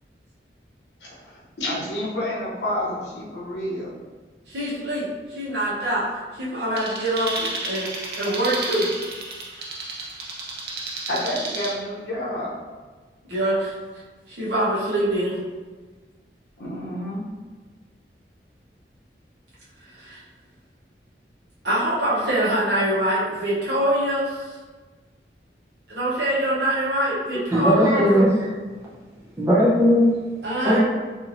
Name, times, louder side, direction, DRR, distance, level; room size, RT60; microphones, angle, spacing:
voice 1, 1.0-4.0 11.1-12.6 16.6-17.2, left 1 dB, 85° left, -5 dB, 0.8 m, -29 dB
voice 2, 4.5-8.9 13.3-13.7 14.3-15.4 20.0-20.2 21.6-24.4 25.9-28.0 30.4-30.9, right 1 dB, 75° right, -8 dB, 1.0 m, -24 dB
sound 1, 6.8-11.7, right 3 dB, 60° right, 0.6 m, -32 dB
voice 3, 27.5-28.5 29.4-30.1 30.6-30.9, equal, 15° right, -7 dB, 0.7 m, -17 dB
2.8 x 2.7 x 2.6 m, 1.3 s
head